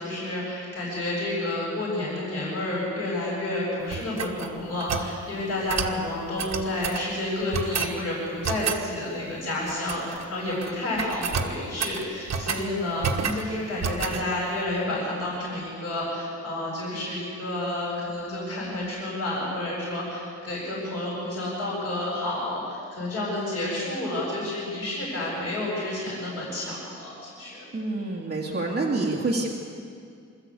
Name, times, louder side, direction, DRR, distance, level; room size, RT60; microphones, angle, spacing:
voice 1, 0.0-27.6, left 1 dB, 45° left, -6 dB, 7.6 m, -30 dB
sound 1, 3.9-5.1 5.7-6.0 6.4-7.1 7.5-8.0 8.4-8.8 9.7-10.2 10.5-10.7 11.0-12.7 13.0-13.5 13.8-14.2, right 5 dB, 65° right, 1.5 m, -30 dB
voice 2, 27.7-29.5, right 2 dB, 35° right, -2 dB, 2.6 m, -27 dB
26.0 x 14.0 x 8.6 m, 2.3 s
wide cardioid pair, 150°, 30 cm